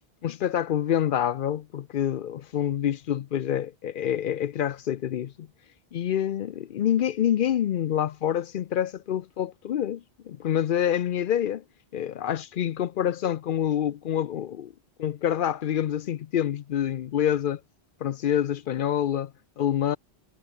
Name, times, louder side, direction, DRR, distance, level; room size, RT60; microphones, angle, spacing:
voice 1, 0.2-5.5 5.9-11.6 11.9-14.7 15.0-17.6 18.0-20.0, left 10 dB, 60° left, 0.6 m, -27 dB
omnidirectional pair, 1.1 m